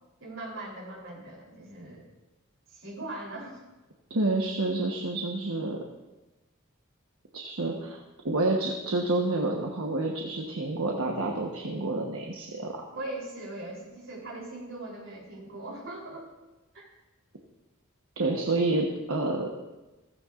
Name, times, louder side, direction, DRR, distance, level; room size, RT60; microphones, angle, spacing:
voice 1, 0.2-2.1 2.7-3.6 12.9-16.3 16.7-16.9, right 2 dB, 60° right, -2 dB, 3.5 m, -40 dB
voice 2, 4.1-5.8 7.3-8.0 8.2-12.8 18.2-19.5, right 2 dB, 80° right, 0 dB, 1.1 m, -28 dB
15.0 x 15.0 x 2.5 m, 1.1 s
head